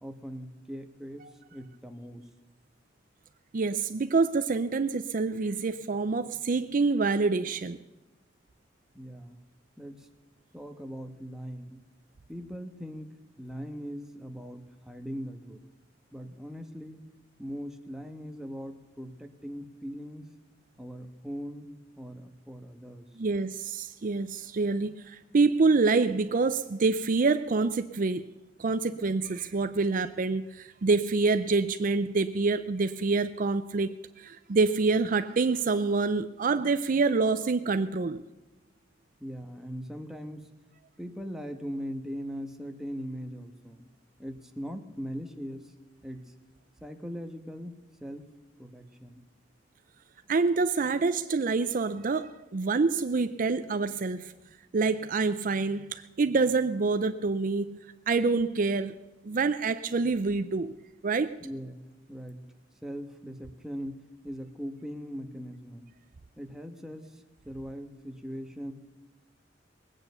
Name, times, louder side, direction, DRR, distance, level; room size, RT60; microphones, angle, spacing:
voice 1, 0.0-2.2 8.9-9.4 9.8-10.1 10.5-11.9 12.3-15.6 16.1-17.0 17.4-20.3 20.8-21.7 22.0-23.1 39.2-40.5 41.0-43.9 44.2-45.7 46.0-46.3 46.8-48.2 48.6-49.2 61.4-62.4 62.8-65.8 66.4-67.1 67.4-68.7, equal, 5° right, 1.2 m, -40 dB
voice 2, 3.5-7.8 23.2-28.3 28.6-38.2 50.3-54.3 54.7-57.8 58.1-59.0 59.2-60.7 61.0-61.4, right 4 dB, 45° right, 0.5 m, -26 dB
20.5 x 8.8 x 6.8 m
head